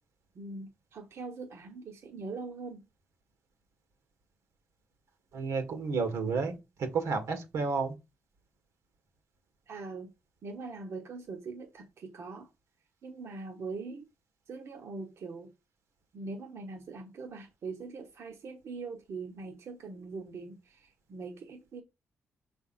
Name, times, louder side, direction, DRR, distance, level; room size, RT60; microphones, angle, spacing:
voice 1, 0.3-2.9 9.7-10.1 10.4-12.5 13.0-14.1 14.5-15.5 16.1-21.8, right 4 dB, 65° right, 1.0 m, -42 dB
voice 2, 5.3-7.9, right 4 dB, 85° right, 1.8 m, -31 dB
6.0 x 3.5 x 5.7 m
cardioid pair, 85°, 5 cm